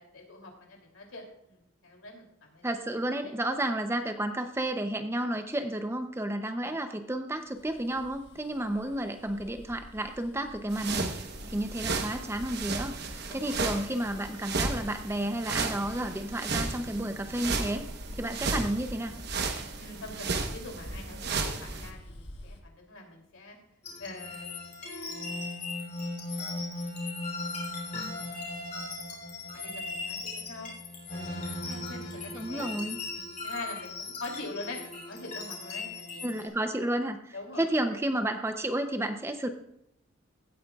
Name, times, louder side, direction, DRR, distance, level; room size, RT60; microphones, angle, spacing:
voice 1, 0.0-2.8 3.2-3.3 6.6-6.7 8.8-8.9 13.3-13.6 19.8-23.6 24.0-24.5 29.5-30.7 31.1-32.7 33.1-36.2 37.3-37.7, left 2 dB, 80° left, 1 dB, 2.8 m, -44 dB
voice 2, 2.6-17.9 18.2-19.1 32.3-33.0 36.2-39.5, right 1 dB, 10° right, 7 dB, 0.6 m, -32 dB
Bus, 7.5-22.6, equal, 55° left, 1.4 m, -47 dB
sound 1, 10.7-21.9, right 4 dB, 50° right, 1.0 m, -34 dB
sound 2, 23.8-36.5, left 2 dB, 35° left, 3.1 m, -37 dB
16.0 x 9.3 x 2.4 m, 0.78 s
head